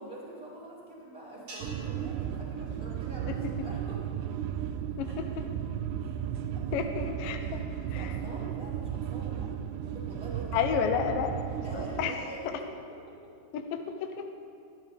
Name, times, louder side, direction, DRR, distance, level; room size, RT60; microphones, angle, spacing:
voice 1, 0.0-4.0 5.0-5.2 6.0-6.2 6.5-6.9 7.2-7.6 7.9-9.5 9.8-10.9 11.6-12.7 13.1-13.2, right 1 dB, 15° right, -8 dB, 4.4 m, -45 dB
sound 1, 1.5-3.9, right 1 dB, 50° right, 4.8 m, -51 dB
sound 2, 1.6-12.1, right 9 dB, 80° right, 2.4 m, -35 dB
voice 2, 5.0-5.3 6.7-7.6 10.5-11.3 11.7-12.1 13.5-14.2, left 7 dB, 75° left, 5 dB, 2.1 m, -30 dB
21.5 x 13.0 x 3.5 m, 2.4 s
omnidirectional pair, 4.9 m